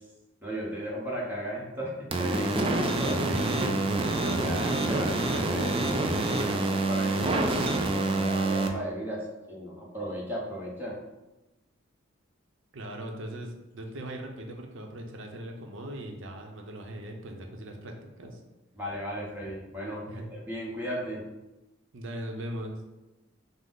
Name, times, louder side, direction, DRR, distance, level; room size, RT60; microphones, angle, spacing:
voice 1, 0.4-3.3 4.4-7.5 7.9-11.0 18.8-21.2, equal, 10° right, -4 dB, 0.9 m, -35 dB
sound 1, 2.1-8.7, right 2 dB, 25° right, 0.3 m, -27 dB
voice 2, 3.1-4.0 12.7-18.4 20.1-20.3 21.9-22.8, right 1 dB, 60° right, 3 dB, 0.6 m, -39 dB
5.3 x 2.0 x 3.8 m, 1.0 s
head